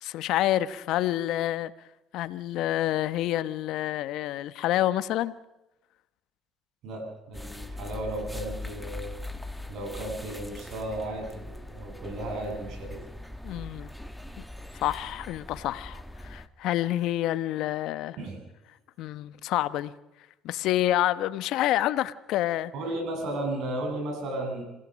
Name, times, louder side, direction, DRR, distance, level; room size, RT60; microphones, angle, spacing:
voice 1, 0.0-1.7 2.1-5.3 13.4-13.9 14.7-18.2 19.0-19.9 20.4-22.7, left 13 dB, 70° left, 14 dB, 1.0 m, -28 dB
voice 2, 6.8-9.1 9.7-13.0 18.2-18.4 22.7-24.6, right 1 dB, 70° right, 3 dB, 7.6 m, -34 dB
sound 1, 7.3-16.5, left 1 dB, 5° left, 1.5 m, -41 dB
27.5 x 16.5 x 6.4 m, 0.96 s
supercardioid pair, 75°, 0 cm